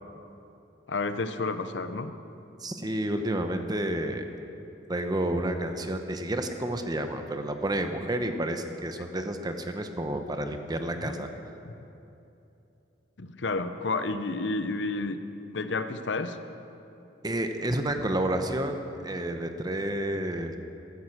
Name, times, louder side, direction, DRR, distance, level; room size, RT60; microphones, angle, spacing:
voice 1, 0.9-2.1 10.9-11.3 11.6-11.7 13.2-15.2 15.5-16.4, left 3 dB, 70° left, 10 dB, 0.7 m, -31 dB
voice 2, 2.6-4.3 4.9-11.3 17.2-20.6, right 1 dB, 20° right, 6 dB, 0.9 m, -30 dB
14.5 x 13.0 x 6.5 m, 2.8 s
head